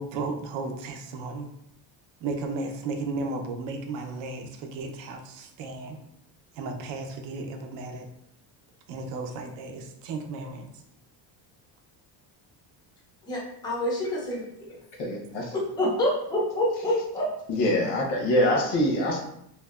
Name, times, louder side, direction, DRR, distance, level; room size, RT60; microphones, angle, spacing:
voice 1, 0.0-1.5 2.2-6.0 6.5-8.1 8.9-10.8, right 3 dB, 70° right, 4 dB, 0.5 m, -34 dB
voice 2, 13.2-14.8 15.5-17.3, left 1 dB, 10° left, -4 dB, 0.3 m, -27 dB
voice 3, 15.0-15.5 17.5-19.2, left 1 dB, 90° left, 0 dB, 0.8 m, -24 dB
2.7 x 2.0 x 2.2 m, 0.74 s
cardioid pair, 165°, 46 cm